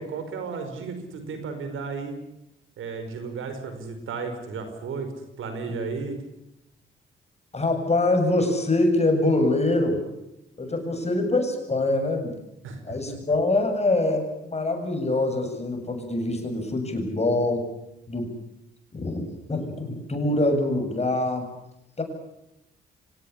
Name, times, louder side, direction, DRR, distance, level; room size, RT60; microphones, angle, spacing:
voice 1, 0.0-2.2 2.8-5.1 5.4-6.2 12.6-13.0, right 4 dB, 80° right, 7 dB, 5.2 m, -33 dB
voice 2, 7.5-10.0 10.6-12.3 12.9-14.3 14.5-17.7 18.1-18.3 18.9-21.5 22.0-22.1, left 2 dB, 30° left, 5 dB, 7.8 m, -24 dB
25.5 x 18.5 x 8.6 m, 0.85 s
supercardioid pair, 65°, 21 cm